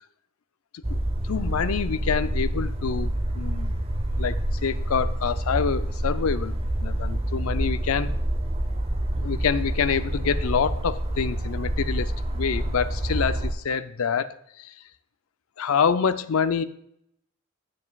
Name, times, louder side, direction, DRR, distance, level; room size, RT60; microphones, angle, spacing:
sound 1, 0.8-13.5, right 1 dB, 30° right, 0.8 m, -27 dB
voice 1, 1.3-3.8 4.2-6.5 6.8-8.1 9.2-14.7 15.6-16.6, left 6 dB, 85° left, 13 dB, 0.5 m, -26 dB
9.6 x 7.7 x 2.3 m, 0.75 s
head